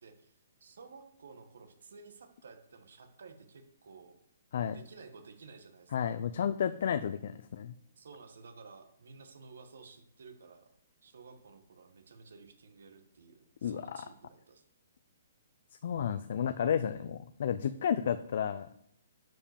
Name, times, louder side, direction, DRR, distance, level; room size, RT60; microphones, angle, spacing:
voice 1, 0.0-4.2 4.7-6.2 8.0-10.7 11.0-14.6, right 4 dB, 75° right, 7 dB, 1.7 m, -54 dB
voice 2, 5.9-7.7 13.6-14.1 15.8-18.7, left 8 dB, 55° left, 12 dB, 0.5 m, -32 dB
10.0 x 5.3 x 6.9 m, 0.73 s
hypercardioid pair, 160°, 0 cm